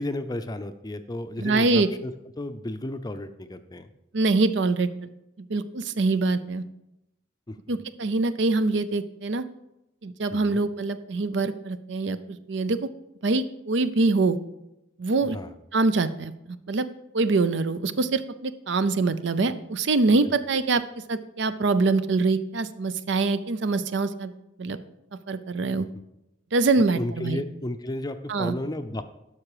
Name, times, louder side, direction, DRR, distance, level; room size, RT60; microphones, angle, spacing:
voice 1, 0.0-3.9 7.5-7.8 10.3-10.6 15.3-15.5 20.3-20.4 25.8-25.9 26.9-29.0, left 1 dB, 20° left, 9 dB, 0.5 m, -33 dB
voice 2, 1.4-1.9 4.1-5.1 5.4-6.6 7.7-9.4 10.0-12.9 13.2-14.4 15.0-15.4 15.7-16.9 17.1-24.3 24.6-24.8 25.3-25.9 26.5-27.4 28.3-28.5, right 3 dB, 60° right, 13 dB, 0.5 m, -24 dB
12.0 x 6.1 x 4.9 m, 0.91 s
head